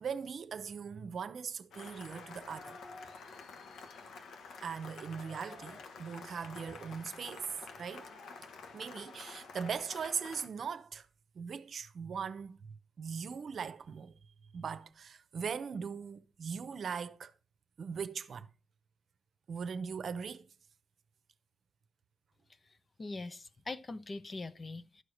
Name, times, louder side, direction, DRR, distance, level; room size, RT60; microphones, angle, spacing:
voice 1, 0.0-2.8 4.6-7.5 7.8-8.1 8.7-11.1 11.3-12.6 13.0-14.1 14.5-17.3 17.8-18.5 19.5-20.5, right 6 dB, 60° right, 0.8 m, -40 dB
Cheering / Applause, 1.7-10.5, left 4 dB, 80° left, 1.3 m, -49 dB
voice 2, 23.0-25.0, left 3 dB, 35° left, 0.7 m, -42 dB
12.5 x 4.7 x 6.4 m
cardioid pair, 95°, 0 cm